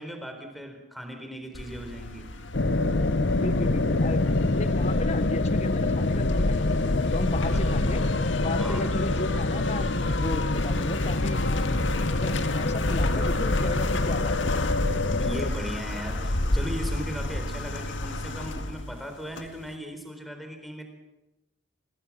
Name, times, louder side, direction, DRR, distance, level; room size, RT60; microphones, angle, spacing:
voice 1, 0.0-2.3 7.5-7.6 8.6-8.9 15.2-20.8, equal, ahead, 4 dB, 4.2 m, -37 dB
sound 1, 1.5-19.7, left 1 dB, 80° left, 1.8 m, -31 dB
sound 2, 2.5-15.5, left 2 dB, 65° left, 0.9 m, -26 dB
voice 2, 3.4-8.0 8.4-11.5 12.1-14.6, left 1 dB, 35° left, 13 dB, 1.0 m, -34 dB
27.0 x 20.0 x 7.6 m, 0.96 s
head